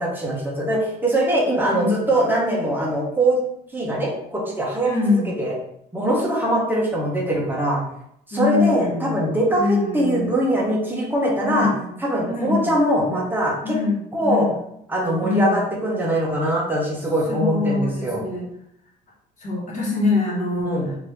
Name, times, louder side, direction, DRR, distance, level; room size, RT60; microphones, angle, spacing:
voice 1, 0.0-3.4 3.7-5.6 5.9-7.8 8.3-11.7 12.0-13.8 14.1-14.5 14.9-18.2 20.6-20.9, right 1 dB, 10° right, -3 dB, 1.2 m, -22 dB
voice 2, 1.7-2.1 4.8-5.3 8.3-9.2 9.6-10.3 11.4-12.0 12.3-12.7 13.6-14.6 15.2-15.6 17.3-18.4 19.4-21.0, left 3 dB, 45° left, -3 dB, 1.5 m, -24 dB
3.6 x 2.9 x 3.3 m, 0.73 s
cardioid pair, 110°, 17 cm